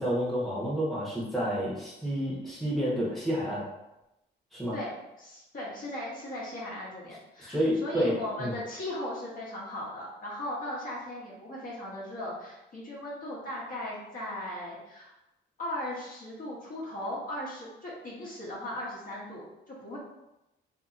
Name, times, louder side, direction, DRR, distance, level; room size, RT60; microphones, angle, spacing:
voice 1, 0.0-3.6 4.5-4.8 7.4-8.5, equal, ahead, -7 dB, 1.0 m, -29 dB
voice 2, 4.7-15.1 15.6-20.0, left 1 dB, 45° left, -6 dB, 1.0 m, -38 dB
2.7 x 2.6 x 2.4 m, 0.92 s
cardioid pair, 90°, 20 cm